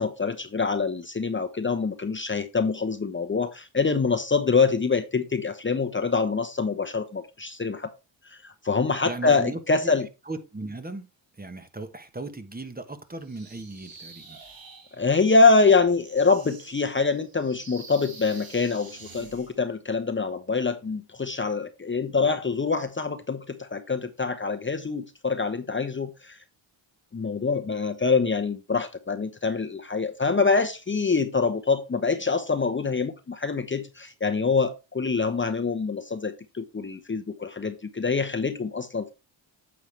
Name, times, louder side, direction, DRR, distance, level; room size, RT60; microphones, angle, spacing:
voice 1, 0.0-7.9 8.3-10.0 15.0-26.4 27.1-39.1, left 4 dB, 25° left, 0.9 m, -25 dB
voice 2, 9.0-9.9 10.3-11.1 11.4-14.4, right 2 dB, 20° right, 1.2 m, -37 dB
sound 1, 13.2-19.6, right 4 dB, 50° right, 2.7 m, -48 dB
9.3 x 6.7 x 3.3 m
cardioid pair, 80°, 46 cm